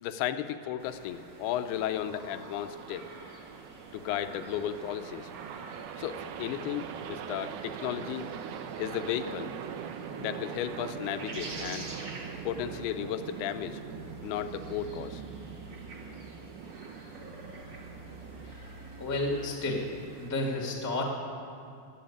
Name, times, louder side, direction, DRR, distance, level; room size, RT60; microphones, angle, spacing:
voice 1, 0.0-3.1 3.9-5.3 6.0-8.3 8.8-9.5 10.2-11.9 12.4-13.8 14.2-15.2, left 10 dB, 85° left, 10 dB, 2.6 m, -34 dB
sound 1, 0.8-20.3, right 2 dB, 40° right, 1.9 m, -49 dB
sound 2, 1.9-18.5, right 8 dB, 90° right, 1.8 m, -42 dB
sound 3, 11.4-19.4, right 1 dB, 70° right, 5.9 m, -51 dB
voice 2, 19.0-19.9 20.2-21.0, left 2 dB, 10° left, 0 dB, 0.8 m, -31 dB
20.5 x 7.9 x 8.7 m, 2.5 s
omnidirectional pair, 4.5 m